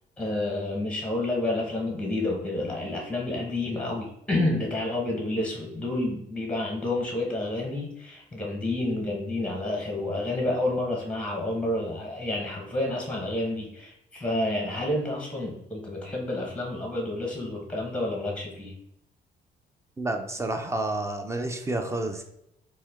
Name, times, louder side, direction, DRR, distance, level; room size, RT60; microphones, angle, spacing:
voice 1, 0.2-18.7, left 2 dB, 5° left, 0 dB, 1.0 m, -29 dB
voice 2, 20.0-22.2, right 2 dB, 15° right, 5 dB, 0.5 m, -30 dB
4.2 x 2.1 x 3.5 m, 0.79 s
cardioid pair, 90°, 20 cm